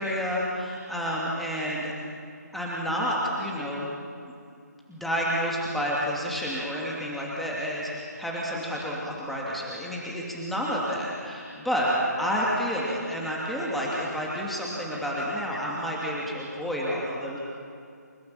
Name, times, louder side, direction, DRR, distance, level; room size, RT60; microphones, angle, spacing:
voice 1, 0.0-1.9 2.5-4.0 4.9-11.9 12.2-17.4, equal, ahead, -5 dB, 2.7 m, -30 dB
29.5 x 17.5 x 7.3 m, 2.3 s
figure-of-eight pair, 155°, 10 cm